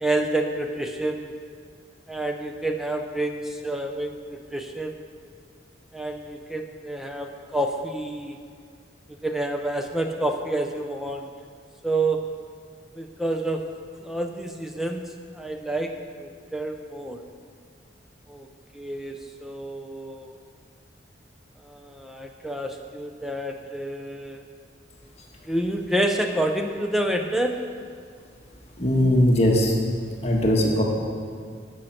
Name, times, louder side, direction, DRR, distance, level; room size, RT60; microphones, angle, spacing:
voice 1, 0.0-1.3 2.1-5.0 5.9-8.4 9.2-11.3 11.8-12.5 13.0-13.7 14.0-17.2 18.3-18.5 18.7-20.3 21.6-24.4 25.5-27.8, right 1 dB, ahead, 4 dB, 0.5 m, -28 dB
voice 2, 28.8-29.7 30.2-30.8, left 1 dB, 35° left, -1 dB, 1.3 m, -19 dB
14.0 x 6.5 x 5.9 m, 2.1 s
head